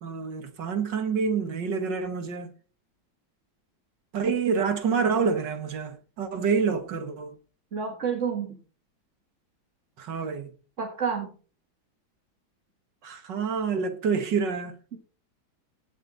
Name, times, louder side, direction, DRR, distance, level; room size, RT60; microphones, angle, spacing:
voice 1, 0.0-2.5 4.1-7.3 10.0-10.5 13.0-14.7, right 5 dB, 60° right, 2.3 m, -27 dB
voice 2, 7.7-8.6 10.8-11.3, right 6 dB, 35° right, 2.2 m, -29 dB
16.5 x 7.8 x 4.1 m
omnidirectional pair, 2.2 m